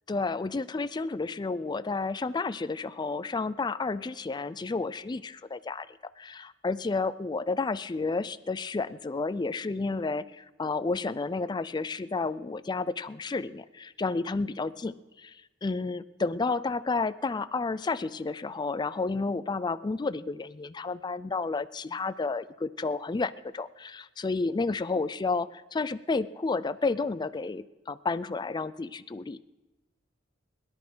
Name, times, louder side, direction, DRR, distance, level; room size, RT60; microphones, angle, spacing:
voice 1, 0.1-5.9 6.2-29.5, left 3 dB, 20° left, 15 dB, 0.4 m, -31 dB
18.0 x 11.0 x 6.2 m, 1.1 s
head